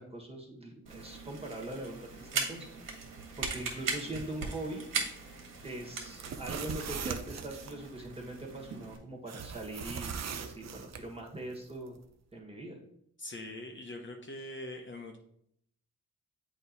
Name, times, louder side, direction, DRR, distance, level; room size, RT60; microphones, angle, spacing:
voice 1, 0.0-2.7 3.0-4.8 5.6-12.0 12.3-12.8, right 1 dB, 15° right, 0 dB, 1.7 m, -42 dB
sound 1, 0.9-9.0, right 4 dB, 70° right, 1.7 m, -39 dB
sound 2, 6.1-7.7 9.3-11.0, right 6 dB, 50° right, 0.6 m, -40 dB
voice 2, 13.2-15.2, left 1 dB, 35° left, 2 dB, 0.9 m, -42 dB
7.7 x 3.0 x 4.1 m, 0.71 s
cardioid pair, 80°, 34 cm